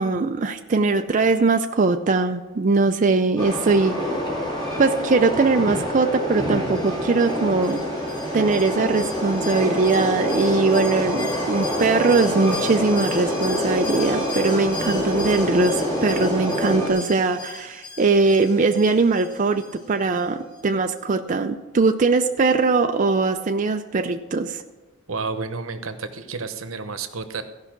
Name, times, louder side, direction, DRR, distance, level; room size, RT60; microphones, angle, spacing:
voice 1, 0.0-3.9 4.8-7.8 8.3-24.6, right 3 dB, 40° right, 5 dB, 0.4 m, -21 dB
Train, 3.4-16.9, equal, 20° left, 2.3 m, -26 dB
Alarm, 6.7-20.2 20.5-20.6, left 3 dB, 60° left, 3.0 m, -38 dB
voice 2, 25.1-27.4, right 4 dB, 85° right, 9 dB, 1.0 m, -30 dB
15.0 x 5.6 x 5.9 m, 1.2 s
head